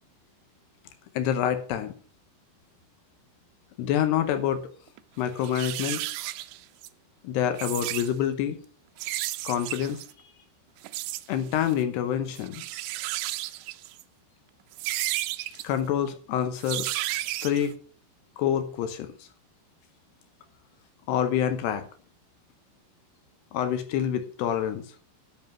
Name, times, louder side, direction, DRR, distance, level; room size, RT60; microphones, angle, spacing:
voice 1, 1.2-1.9 3.8-4.7 5.2-6.1 7.2-8.6 9.4-10.0 11.3-12.6 15.6-16.9 17.4-17.8 18.4-19.1 21.1-21.8 23.5-24.8, left 9 dB, 75° left, 9 dB, 2.5 m, -27 dB
sound 1, 4.9-5.0 5.4-6.9 7.5-8.1 9.0-10.1 10.8-11.2 11.5-11.8 12.4-14.0 14.7-15.7 16.6-17.7, right 16 dB, 90° right, 2.5 m, -33 dB
11.0 x 7.7 x 5.9 m, 0.42 s
omnidirectional pair, 5.8 m